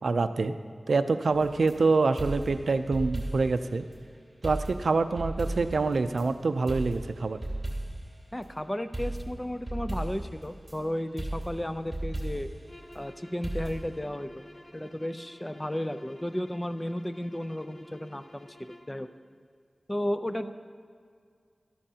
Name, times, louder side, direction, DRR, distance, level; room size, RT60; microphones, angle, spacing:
voice 1, 0.0-0.6 0.9-3.9 4.4-7.4 20.3-20.5, right 3 dB, 90° right, 10 dB, 0.4 m, -26 dB
sound 1, 1.3-1.8 2.2-3.6 3.9-4.0 4.4-6.3 6.7-8.1 8.9-10.8 11.2-12.6 13.4-14.0, right 1 dB, 15° right, 2.8 m, -35 dB
voice 2, 8.3-12.5 12.9-14.4 14.7-19.1 19.9-20.5, left 1 dB, 15° left, 10 dB, 0.5 m, -34 dB
sound 2, 12.6-19.0, left 1 dB, 60° left, 1.0 m, -52 dB
13.0 x 13.0 x 2.8 m, 2.1 s
wide cardioid pair, 60°, 0 cm